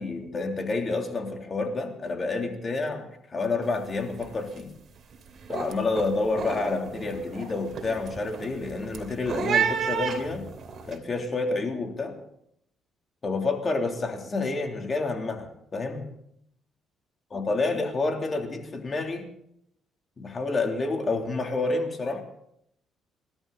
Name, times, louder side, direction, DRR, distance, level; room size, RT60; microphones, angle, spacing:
voice 1, 0.0-4.7 5.5-10.5 10.9-12.1 13.2-16.1 17.3-19.3 20.2-22.2, left 3 dB, 35° left, 2 dB, 3.3 m, -29 dB
sound 1, 3.6-3.9 4.2-4.6 5.0-10.9, right 7 dB, 50° right, 3.0 m, -32 dB
28.0 x 12.5 x 4.2 m, 0.73 s
cardioid pair, 105°, 0 cm